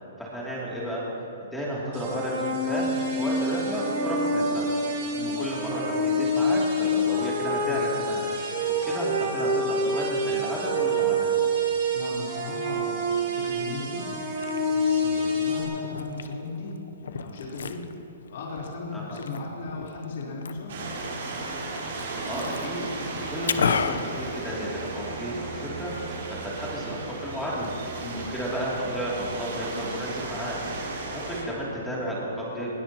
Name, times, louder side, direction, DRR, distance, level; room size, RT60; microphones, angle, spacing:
voice 1, 0.2-1.1 1.5-4.7 5.4-8.2 8.8-11.4 18.9-19.2 21.9-22.9 23.3-25.9 26.3-27.7 28.3-30.6 31.1-32.7, equal, ahead, -7 dB, 2.8 m, -32 dB
sound 1, 1.9-15.6, equal, 35° right, 4.4 m, -27 dB
voice 2, 11.9-17.8 18.2-20.8 28.0-28.2, left 3 dB, 55° left, -4 dB, 4.0 m, -37 dB
Liquid, 14.1-25.1, left 6 dB, 85° left, 0.8 m, -35 dB
sound 2, 20.7-31.4, right 3 dB, 60° right, 4.2 m, -35 dB
20.5 x 19.5 x 3.0 m, 2.9 s
hypercardioid pair, 165°, 0 cm